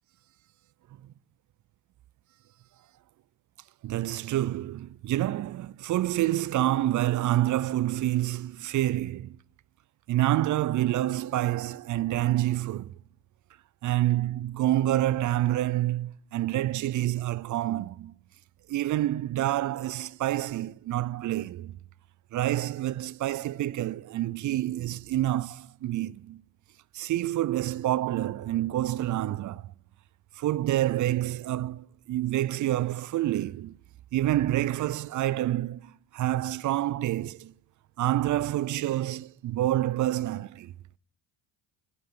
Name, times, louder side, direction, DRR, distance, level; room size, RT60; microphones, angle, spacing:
voice 1, 3.8-9.4 10.1-13.0 13.8-18.1 18.7-21.8 22.3-26.4 26.9-29.7 30.4-33.8 34.1-37.5 38.0-40.7, right 14 dB, 45° right, 0.4 m, -28 dB
18.0 x 9.3 x 3.7 m
supercardioid pair, 70°, 44 cm